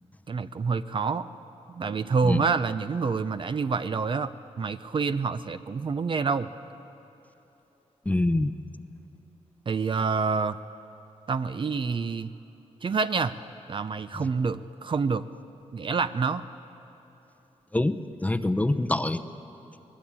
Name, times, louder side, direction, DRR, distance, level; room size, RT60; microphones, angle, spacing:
voice 1, 0.3-1.3 1.7-4.3 4.6-6.5 9.7-10.6 11.3-12.3 12.8-13.3 13.7-15.2 15.7-16.4, right 5 dB, 45° right, 11 dB, 0.6 m, -27 dB
voice 2, 8.1-8.5 17.7-19.2, left 2 dB, 10° left, 9 dB, 0.8 m, -25 dB
24.0 x 19.5 x 8.8 m, 3.0 s
wide cardioid pair, 105°, 12 cm